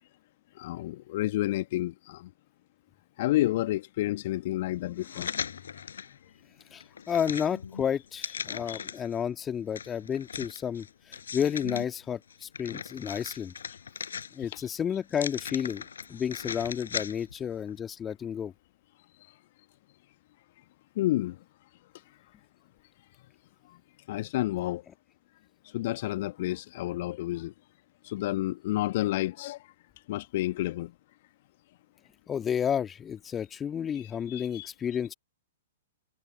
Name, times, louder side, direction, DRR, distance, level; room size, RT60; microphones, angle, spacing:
voice 1, 0.5-2.3 3.2-6.0 8.5-8.8 14.4-14.7 19.2-19.3 20.9-21.4 23.7-23.8 24.1-24.8 25.6-27.5 28.0-29.7 30.1-30.9 33.9-34.7, left 16 dB, 45° left, 1.4 m, -31 dB
sound 1, 5.0-6.1 6.6-9.1 9.8-11.8 12.3-14.6 15.1-17.4 17.8-17.9, left 7 dB, 65° left, 4.3 m, -38 dB
voice 2, 6.7-13.5 14.3-18.5 32.3-35.1, left 8 dB, 20° left, 2.1 m, -31 dB
figure-of-eight pair, 110°, 0 cm